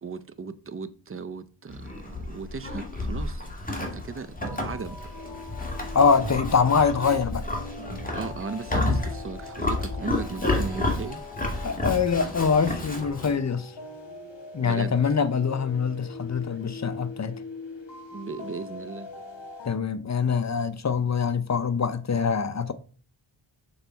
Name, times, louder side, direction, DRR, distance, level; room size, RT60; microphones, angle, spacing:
voice 1, 0.0-3.5 3.8-5.0 7.8-11.2 14.6-15.0 16.3-16.4 18.1-19.1, right 5 dB, 25° right, 0.6 m, -37 dB
Livestock farm animals working animals, 1.7-13.4, left 2 dB, 15° left, 2.0 m, -31 dB
sound 1, 4.4-19.8, left 3 dB, 60° left, 1.9 m, -42 dB
voice 2, 5.9-7.4 11.6-13.7 14.5-17.4 19.6-22.7, left 6 dB, 35° left, 0.7 m, -24 dB
6.7 x 4.0 x 4.5 m
cardioid pair, 65°, 49 cm